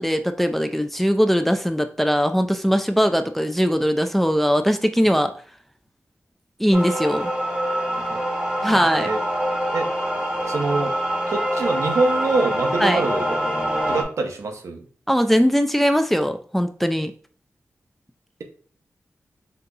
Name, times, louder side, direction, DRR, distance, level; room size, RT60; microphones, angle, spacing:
voice 1, 0.0-5.3 6.6-7.3 8.6-9.1 12.8-13.0 15.1-17.1, equal, 5° left, 7 dB, 0.3 m, -20 dB
sound 1, 6.7-14.0, equal, 15° right, 0.8 m, -25 dB
voice 2, 8.5-9.2 9.7-9.9 10.5-10.9 11.3-13.4 13.9-14.9, right 3 dB, 80° right, 4 dB, 0.6 m, -25 dB
3.9 x 2.8 x 2.3 m, 0.43 s
cardioid pair, 65°, 5 cm